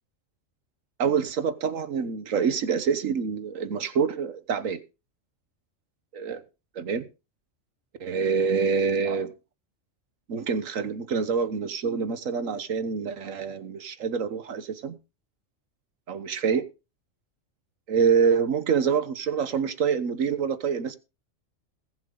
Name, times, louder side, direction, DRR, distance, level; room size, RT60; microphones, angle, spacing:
voice 1, 1.0-4.8 6.1-6.4 6.7-7.0 8.0-9.3 10.3-15.0 16.1-16.6 17.9-21.0, right 6 dB, 90° right, 1.5 m, -26 dB
21.0 x 7.3 x 3.8 m
omnidirectional pair, 1.3 m